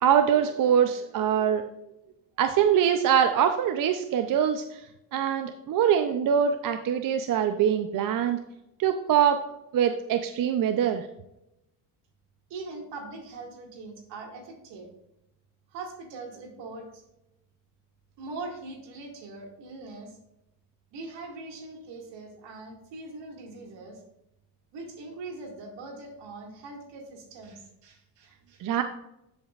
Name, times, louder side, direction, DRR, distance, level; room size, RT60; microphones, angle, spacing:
voice 1, 0.0-1.6 2.4-4.8 5.1-8.4 8.8-9.4 9.7-11.1 28.6-28.8, right 8 dB, 45° right, 7 dB, 0.6 m, -23 dB
voice 2, 12.5-14.9 15.7-17.0 18.2-20.2 20.9-24.0 24.7-28.6, right 3 dB, 70° right, 1 dB, 2.2 m, -41 dB
12.0 x 5.3 x 2.4 m, 0.87 s
supercardioid pair, 85°, 45 cm